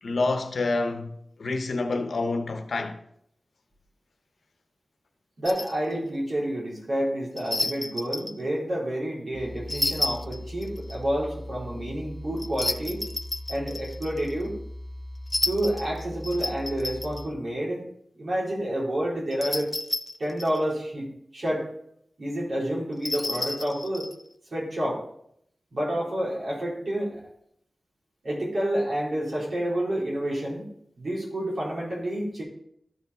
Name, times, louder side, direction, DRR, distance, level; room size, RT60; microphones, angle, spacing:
voice 1, 0.0-3.0, left 3 dB, 85° left, 0.9 m, -28 dB
sound 1, 5.4-5.8 7.4-8.4 9.7-11.0 12.4-14.3 15.3-17.2 19.3-20.6 22.9-24.2, left 2 dB, 35° left, 0.4 m, -31 dB
voice 2, 5.4-13.1 13.5-14.6 15.5-17.8 18.2-19.7 20.2-21.7 22.2-24.1 24.5-25.0 25.7-27.2 28.2-30.6 31.0-32.4, right 1 dB, 70° right, 3.6 m, -29 dB
sound 2, 9.3-17.3, left 1 dB, 5° left, 1.8 m, -40 dB
12.5 x 4.7 x 4.1 m
wide cardioid pair, 65°, 0 cm